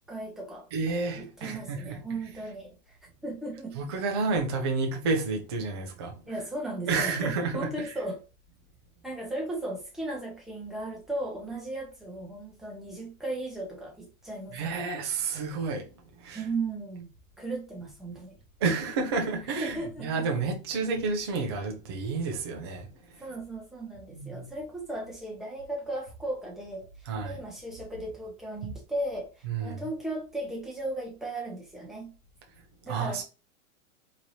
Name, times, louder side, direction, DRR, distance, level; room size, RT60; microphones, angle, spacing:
voice 1, 0.1-0.7 1.2-3.8 6.3-8.2 9.0-14.8 16.3-17.1 17.4-18.4 19.6-20.3 23.2-32.1 32.9-33.2, right 2 dB, ahead, 0.7 m, -36 dB
voice 2, 0.7-2.0 3.8-6.3 6.9-7.9 14.5-15.9 16.2-16.5 18.6-23.2 24.1-24.5 27.1-27.4 28.6-28.7 29.5-29.8 32.8-33.2, right 4 dB, 20° right, 0.3 m, -30 dB
4.5 x 2.9 x 2.6 m
supercardioid pair, 155°, 43 cm